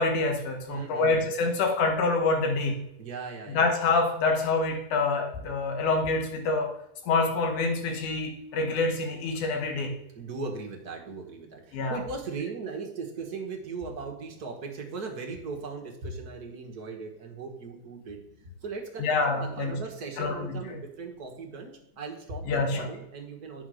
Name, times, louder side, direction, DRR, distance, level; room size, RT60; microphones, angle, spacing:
voice 1, 0.0-2.9 3.5-6.8 7.0-10.0 11.7-12.0 19.0-19.8 20.2-20.6 22.5-22.9, left 3 dB, 85° left, 4 dB, 2.9 m, -26 dB
voice 2, 0.7-1.5 3.0-3.7 10.1-23.7, right 4 dB, 40° right, 1 dB, 1.4 m, -38 dB
9.4 x 5.2 x 6.3 m, 0.84 s
omnidirectional pair, 3.4 m